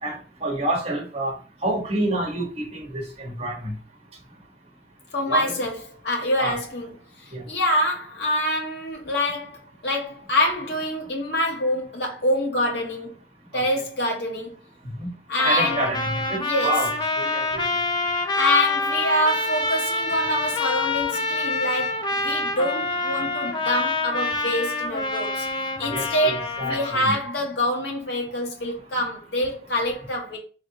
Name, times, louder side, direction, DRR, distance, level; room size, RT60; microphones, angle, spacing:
voice 1, 0.0-1.3 1.6-3.7 5.3-5.6 6.4-6.5 7.3-7.4 15.0-15.1 15.4-17.6 25.9-27.2, right 1 dB, 35° right, 1.1 m, -28 dB
voice 2, 5.1-5.7 6.0-6.9 7.2-13.2 13.5-14.6 15.3-15.8 16.4-16.7 18.3-25.5 25.8-30.4, left 1 dB, 70° left, 1.0 m, -25 dB
Trumpet, 15.4-27.0, left 3 dB, 25° left, 0.5 m, -26 dB
4.1 x 3.2 x 2.7 m
head